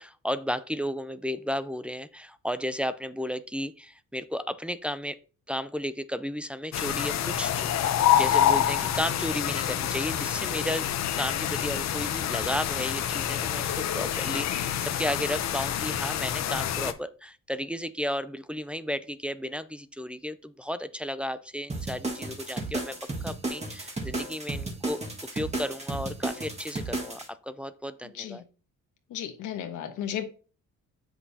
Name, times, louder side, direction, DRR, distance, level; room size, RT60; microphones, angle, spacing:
voice 1, 0.0-5.2 5.5-10.9 11.1-23.0 23.2-25.0 25.3-28.4, equal, 5° right, 12 dB, 0.4 m, -33 dB
sound 1, 6.7-16.9, left 10 dB, 60° left, 0.7 m, -27 dB
sound 2, 21.7-27.3, right 2 dB, 20° right, 1.8 m, -33 dB
voice 2, 28.1-28.4 29.1-30.2, left 10 dB, 80° left, 5 dB, 1.3 m, -34 dB
7.7 x 6.1 x 2.8 m, 0.37 s
cardioid pair, 90°, 30 cm